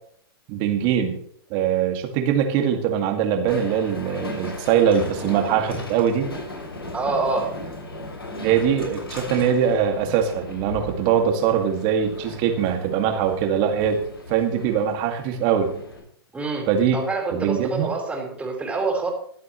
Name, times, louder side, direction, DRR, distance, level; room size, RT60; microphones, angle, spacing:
voice 1, 0.5-1.2 1.5-6.3 8.4-14.0 14.3-15.7 16.7-17.0 17.3-17.9, right 8 dB, 40° right, 5 dB, 2.2 m, -22 dB
Train, 3.5-16.0, left 2 dB, 80° left, 6.1 m, -37 dB
voice 2, 6.9-7.5 16.3-16.6 16.9-19.1, right 3 dB, 10° right, -1 dB, 4.5 m, -26 dB
23.5 x 8.2 x 3.2 m, 0.64 s
hypercardioid pair, 115°, 13 cm